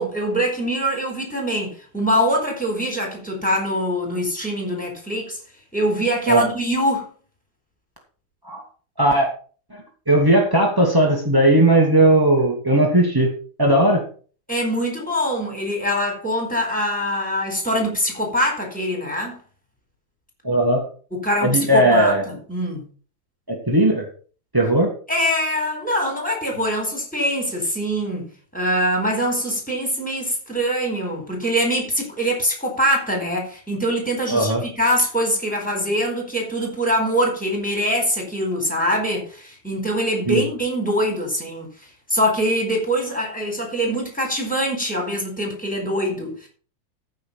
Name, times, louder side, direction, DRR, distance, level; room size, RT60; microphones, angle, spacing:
voice 1, 0.0-5.4 5.7-7.1 14.5-19.4 21.1-22.8 25.1-41.7 42.1-46.5, equal, ahead, 4.0 m, -23 dB
voice 2, 9.0-9.3 9.7-13.3 13.6-14.0 20.4-20.8 21.4-22.2 23.5-24.1 24.5-24.9 34.3-34.6 40.3-40.4, right 1 dB, 20° right, 0.6 m, -17 dB
15.0 x 5.7 x 5.5 m
omnidirectional pair, 4.4 m